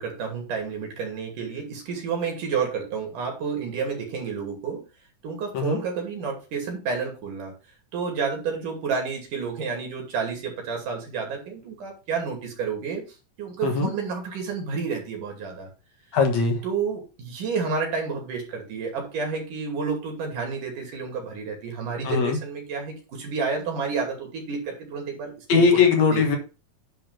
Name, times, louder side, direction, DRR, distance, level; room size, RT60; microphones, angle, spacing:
voice 1, 0.0-4.8 5.2-7.5 7.9-13.0 13.4-15.7 16.6-25.8 26.1-26.2, right 5 dB, 70° right, 2 dB, 4.1 m, -30 dB
voice 2, 16.1-16.6 22.0-22.4 25.5-26.4, left 5 dB, 60° left, 4 dB, 2.5 m, -20 dB
10.5 x 4.4 x 5.8 m, 0.31 s
omnidirectional pair, 3.8 m